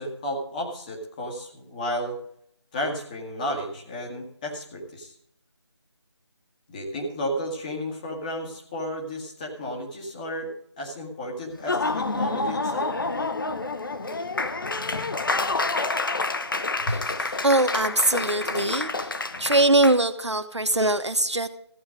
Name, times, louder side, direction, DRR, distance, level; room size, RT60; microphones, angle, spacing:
voice 1, 0.0-2.2 2.7-5.1 6.7-10.5 10.8-12.9 16.9-17.0, equal, 15° left, 0 dB, 1.8 m, -32 dB
Laughter / Applause, 11.5-20.0, left 3 dB, 50° left, 1.0 m, -28 dB
voice 2, 17.4-19.1 19.4-21.5, right 2 dB, 85° right, 10 dB, 1.2 m, -22 dB
14.5 x 8.9 x 5.1 m, 0.69 s
figure-of-eight pair, 160°, 14 cm